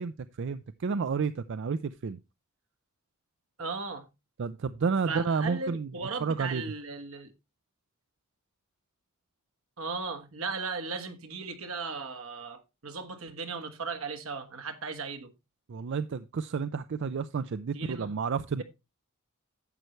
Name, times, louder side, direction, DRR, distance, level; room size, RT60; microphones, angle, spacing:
voice 1, 0.0-2.2 4.4-5.9 6.2-6.6 15.7-18.6, right 5 dB, 60° right, 0.4 m, -31 dB
voice 2, 3.6-4.1 5.1-7.3 9.8-15.3 17.7-18.1, right 4 dB, 80° right, 1.5 m, -37 dB
11.0 x 7.9 x 3.1 m
head